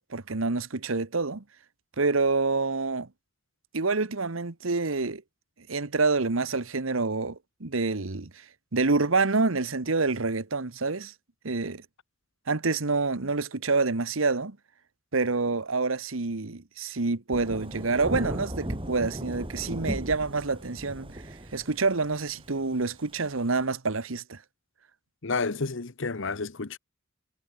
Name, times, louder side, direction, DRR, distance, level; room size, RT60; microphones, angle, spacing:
voice 1, 0.0-1.4 2.0-3.1 3.7-5.2 5.7-8.4 8.7-11.1 11.4-11.8 12.5-14.6 15.1-21.2 21.5-24.4, right 3 dB, 85° right, 1.4 m, -27 dB
Thunder / Rain, 17.3-23.6, right 1 dB, 25° right, 3.6 m, -36 dB
voice 2, 25.2-26.8, left 4 dB, 65° left, 1.1 m, -30 dB
head